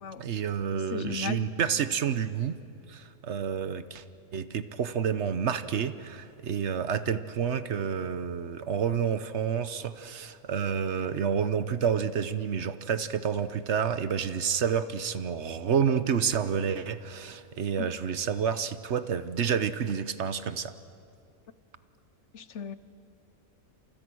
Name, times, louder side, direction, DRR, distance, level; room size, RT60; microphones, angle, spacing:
voice 1, 0.2-2.6 2.9-4.0 4.3-20.7, right 7 dB, 55° right, 12 dB, 1.2 m, -29 dB
voice 2, 0.9-1.4 17.8-17.9 22.3-22.8, left 6 dB, 60° left, 14 dB, 1.1 m, -35 dB
29.5 x 28.0 x 6.3 m, 2.6 s
omnidirectional pair, 1.5 m